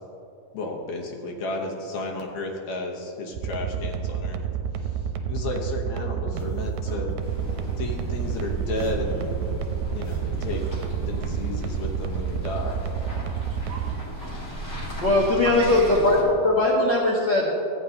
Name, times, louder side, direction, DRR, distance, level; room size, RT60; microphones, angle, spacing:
voice 1, 0.5-4.5 5.3-7.1 7.8-10.6 11.1-12.8, left 2 dB, 70° left, 0 dB, 2.1 m, -33 dB
sound 1, 3.3-13.9, right 8 dB, 85° right, 2.1 m, -29 dB
sound 2, 6.3-11.6, right 2 dB, 40° right, 2.6 m, -41 dB
sound 3, 7.2-16.2, equal, 25° left, 2.2 m, -36 dB
voice 2, 11.0-12.7 13.1-15.0 15.4-16.1, right 4 dB, 70° right, 0 dB, 2.4 m, -41 dB
voice 3, 15.0-17.5, left 2 dB, 85° left, -4 dB, 1.0 m, -20 dB
14.5 x 9.2 x 2.8 m, 2.7 s
omnidirectional pair, 3.6 m